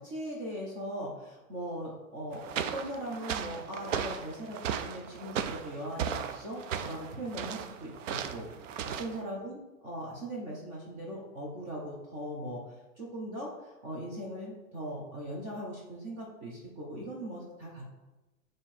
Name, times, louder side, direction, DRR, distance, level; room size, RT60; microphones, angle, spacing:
voice 1, 0.0-17.9, equal, 25° right, -3 dB, 1.0 m, -40 dB
sound 1, 2.3-9.2, right 8 dB, 65° right, 0.6 m, -36 dB
6.9 x 3.1 x 4.4 m, 1.1 s
hypercardioid pair, 165°, 41 cm